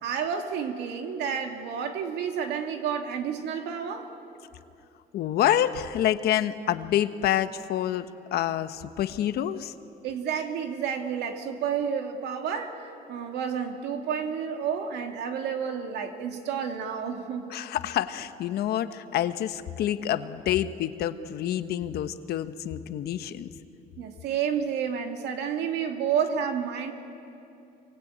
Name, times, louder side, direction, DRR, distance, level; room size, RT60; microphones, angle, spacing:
voice 1, 0.0-4.1 10.0-12.8 13.1-17.5 24.0-26.9, right 7 dB, 80° right, 4 dB, 2.5 m, -30 dB
voice 2, 5.1-9.7 17.5-23.5, left 11 dB, 70° left, 10 dB, 1.2 m, -27 dB
26.5 x 24.5 x 8.7 m, 2.7 s
cardioid pair, 110°, 17 cm